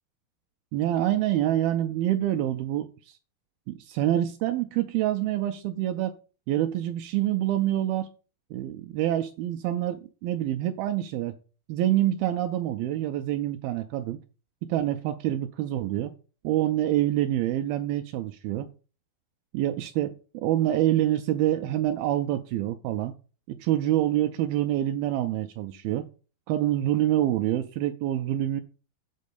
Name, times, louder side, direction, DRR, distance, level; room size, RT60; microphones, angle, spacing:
voice 1, 0.7-3.2 3.7-6.1 6.5-8.1 8.5-11.4 11.7-14.2 14.6-16.1 16.4-18.7 19.5-23.2 23.5-26.1 26.5-28.6, right 13 dB, 85° right, 2.2 m, -26 dB
8.4 x 4.2 x 6.7 m
omnidirectional pair, 4.7 m